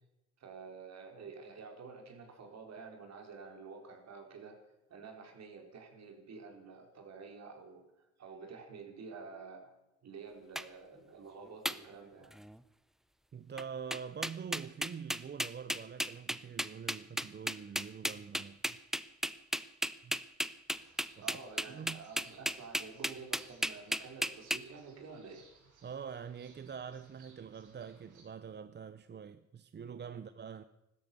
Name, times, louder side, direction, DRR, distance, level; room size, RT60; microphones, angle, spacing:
voice 1, 0.4-4.6 4.9-9.7 10.0-12.3 21.2-25.4, right 4 dB, 60° right, 4.2 m, -49 dB
sound 1, 10.5-10.6 11.6-11.8 12.3-12.6 13.6-13.7 13.9-24.6, equal, ahead, 0.7 m, -34 dB
voice 2, 13.3-18.8 20.0-20.2 21.2-21.3 21.7-22.1 25.8-30.6, right 7 dB, 35° right, 0.7 m, -45 dB
sound 2, 20.7-28.2, right 4 dB, 90° right, 6.4 m, -64 dB
16.0 x 13.0 x 6.9 m
cardioid pair, 90°, 30 cm